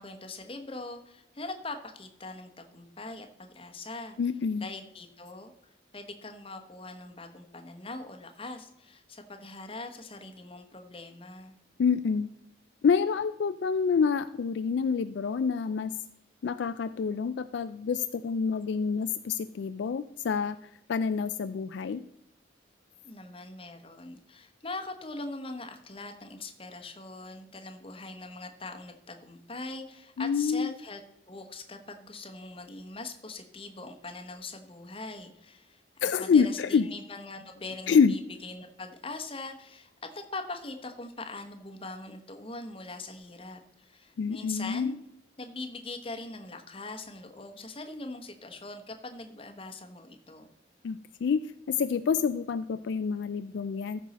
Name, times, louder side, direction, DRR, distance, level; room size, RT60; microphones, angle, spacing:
voice 1, 0.0-4.2 4.5-5.5 5.9-11.5 23.0-31.0 31.3-45.0 45.4-50.5, left 2 dB, 30° left, 6 dB, 1.0 m, -42 dB
voice 2, 4.2-4.7 11.8-12.3 12.8-15.9 16.4-20.6 20.9-22.0 30.2-30.7 36.0-36.9 37.9-38.1 44.2-45.0 50.8-51.4 51.7-54.0, left 6 dB, 65° left, 12 dB, 0.3 m, -27 dB
14.0 x 5.5 x 4.1 m, 0.83 s
head